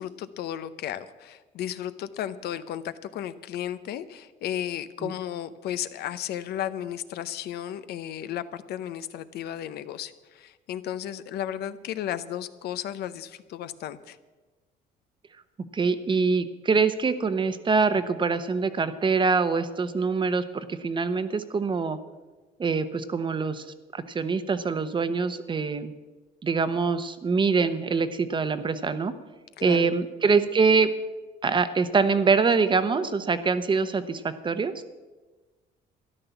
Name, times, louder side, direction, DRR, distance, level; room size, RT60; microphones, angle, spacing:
voice 1, 0.0-14.2 29.6-29.9, left 11 dB, 70° left, 13 dB, 0.8 m, -34 dB
voice 2, 15.7-22.0 22.6-23.6 23.9-25.9 26.4-29.1 29.6-30.9 31.4-34.7, right 4 dB, 30° right, 12 dB, 0.9 m, -24 dB
13.0 x 11.0 x 7.0 m, 1.2 s
cardioid pair, 110°, 17 cm